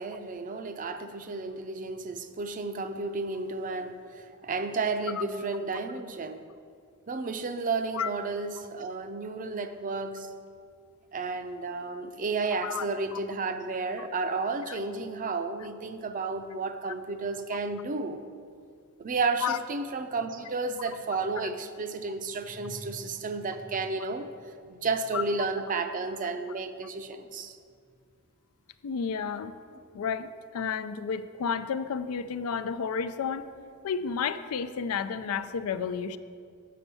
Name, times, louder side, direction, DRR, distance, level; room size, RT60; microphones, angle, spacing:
voice 1, 0.0-6.4 7.1-10.3 11.1-18.2 19.0-24.3 24.7-27.6, right 3 dB, 40° right, 8 dB, 0.5 m, -32 dB
voice 2, 12.5-12.9 14.0-14.1 14.7-14.8 19.4-19.6 25.1-25.2 28.8-29.5 29.9-33.4 33.8-36.2, left 6 dB, 85° left, 12 dB, 0.4 m, -31 dB
8.4 x 5.3 x 6.9 m, 2.2 s
head